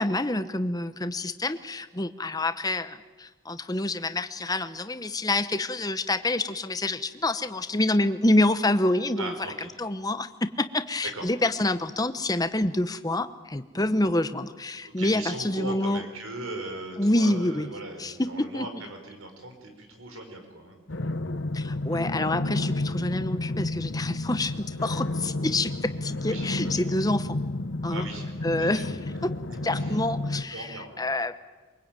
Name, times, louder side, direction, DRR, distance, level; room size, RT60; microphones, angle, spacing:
voice 1, 0.0-9.3 9.8-16.0 17.0-17.7 18.0-18.7 21.5-27.4 27.8-28.1 28.4-28.9 29.2-29.3 29.6-30.7 31.0-31.4, left 1 dB, 15° left, 11 dB, 0.9 m, -27 dB
voice 2, 9.2-9.7 11.1-11.3 14.8-20.8 26.2-26.5 26.8-26.9 27.9-30.0 30.5-31.0, right 2 dB, 75° right, 5 dB, 4.8 m, -39 dB
sound 1, 20.9-30.4, left 2 dB, 60° left, 1.1 m, -31 dB
23.5 x 23.0 x 9.0 m, 1.3 s
head